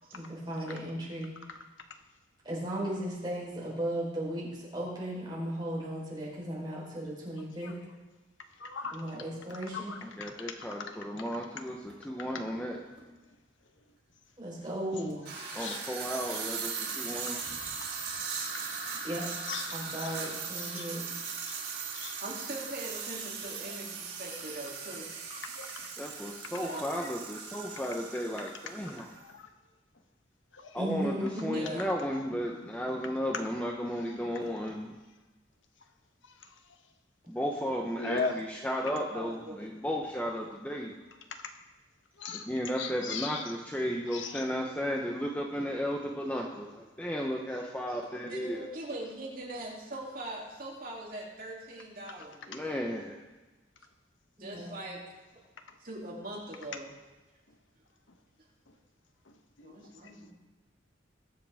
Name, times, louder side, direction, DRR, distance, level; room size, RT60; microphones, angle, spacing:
voice 1, 0.1-1.3 2.4-7.8 8.9-9.9 14.4-15.3 19.0-19.3 19.7-21.0 30.8-31.6 54.4-54.7, right 1 dB, 25° right, -5 dB, 4.1 m, -36 dB
voice 2, 8.6-9.0 9.7-10.0 15.5-15.8 17.3-17.4 19.5-20.1 20.7-20.8 21.5-21.6 21.9-22.2 23.7-23.8 25.3-25.9 26.7-26.8 29.2-29.5 30.5-30.8 38.0-38.3 42.2-42.5 42.8-43.4 44.1-44.4 52.5-52.6 59.6-60.3, left 5 dB, 90° left, 6 dB, 1.1 m, -38 dB
voice 3, 10.0-12.8 15.5-17.4 26.0-29.1 30.7-34.9 37.3-40.9 42.5-48.7 52.5-53.2, equal, 10° left, -1 dB, 0.8 m, -34 dB
sound 1, 11.9-12.0 13.0-13.1 15.1-29.2, right 5 dB, 75° right, 3.5 m, -39 dB
voice 4, 22.2-25.6 26.6-27.0 31.5-31.9 38.9-40.0 47.9-52.6 54.4-55.0 55.8-56.9 59.6-60.3, right 1 dB, 50° right, -4 dB, 2.9 m, -42 dB
22.0 x 7.7 x 3.6 m, 1.2 s
head